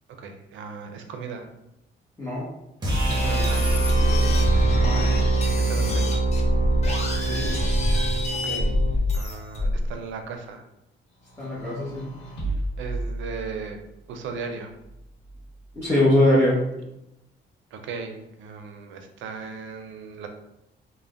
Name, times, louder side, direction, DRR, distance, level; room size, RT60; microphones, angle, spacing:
voice 1, 0.2-1.5 3.1-3.7 5.6-6.3 8.4-8.7 9.1-10.6 12.8-13.8 14.1-14.7 17.7-20.3, right 5 dB, 75° right, 5 dB, 0.5 m, -36 dB
sound 1, 2.8-9.0, right 3 dB, 20° right, 1.0 m, -24 dB
sound 2, 3.1-9.9, left 1 dB, 35° left, 0.7 m, -25 dB
voice 2, 4.7-5.1 7.1-7.5 11.4-12.1 15.7-16.6, left 1 dB, 15° left, -9 dB, 1.0 m, -22 dB
sound 3, 11.2-13.9 14.8-15.8, right 2 dB, 65° left, 1.0 m, -34 dB
3.3 x 2.1 x 2.4 m, 0.86 s
cardioid pair, 90°, 20 cm